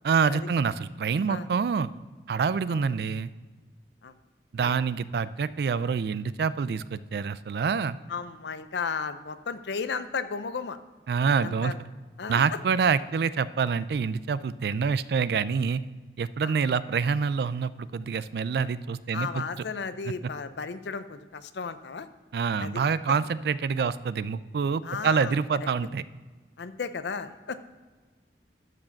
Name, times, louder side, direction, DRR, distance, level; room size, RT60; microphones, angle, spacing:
voice 1, 0.0-1.9 2.3-3.3 4.5-8.0 11.1-11.7 12.3-15.8 16.2-19.4 20.1-20.2 22.3-26.0, right 5 dB, 65° right, 17 dB, 0.3 m, -26 dB
voice 2, 8.1-10.8 11.4-11.8 12.2-12.4 16.4-16.5 19.1-22.1 22.6-22.8 24.8-25.4 26.6-27.6, left 5 dB, 80° left, 12 dB, 0.6 m, -34 dB
12.5 x 4.9 x 5.8 m, 1.3 s
head